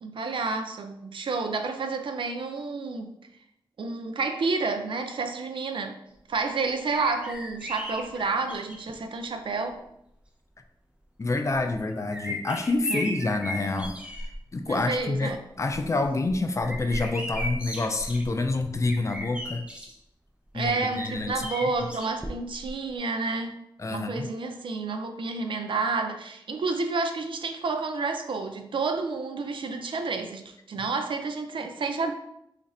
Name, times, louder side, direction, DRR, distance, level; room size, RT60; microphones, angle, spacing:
voice 1, 0.0-3.1 3.8-6.0 6.3-9.8 12.9-13.0 14.7-15.4 15.8-15.9 20.5-23.6 23.9-32.1, right 4 dB, 75° right, 6 dB, 0.4 m, -30 dB
sound 1, 6.9-9.0 9.8-9.9 11.5-14.4 14.8-15.2 15.6-19.9 20.6-22.7 23.0-23.1, equal, 15° right, 0.6 m, -37 dB
voice 2, 11.2-14.0 14.5-15.3 15.6-19.6 20.5-21.4 23.8-24.3, left 2 dB, 35° left, 6 dB, 0.4 m, -27 dB
3.1 x 2.5 x 4.1 m, 0.79 s
wide cardioid pair, 80°, 9 cm